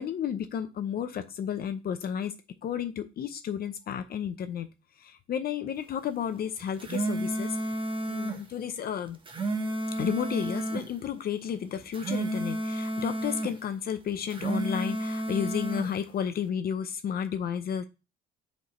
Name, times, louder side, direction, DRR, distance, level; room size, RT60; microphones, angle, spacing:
voice 1, 0.0-2.3 2.6-4.7 5.0-7.6 8.1-9.2 10.0-17.9, left 8 dB, 45° left, 9 dB, 0.7 m, -32 dB
sound 1, 6.6-8.4 9.1-10.9 11.8-13.6 14.2-15.9, right 1 dB, 25° right, 1.2 m, -31 dB
8.0 x 4.5 x 3.2 m, 0.28 s
cardioid pair, 110°, 21 cm